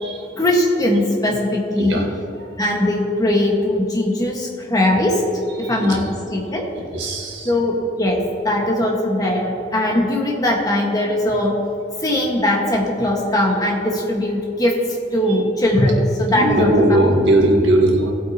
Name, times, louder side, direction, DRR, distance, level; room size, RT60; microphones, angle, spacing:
voice 1, 0.4-2.0 2.6-5.2 5.6-6.7 7.4-11.6 12.0-14.8 15.1-17.0, left 1 dB, 20° left, -1 dB, 1.6 m, -20 dB
voice 2, 5.6-6.0 6.9-7.5 16.3-18.1, right 1 dB, 85° right, -1 dB, 1.9 m, -18 dB
18.0 x 8.2 x 3.0 m, 2.7 s
head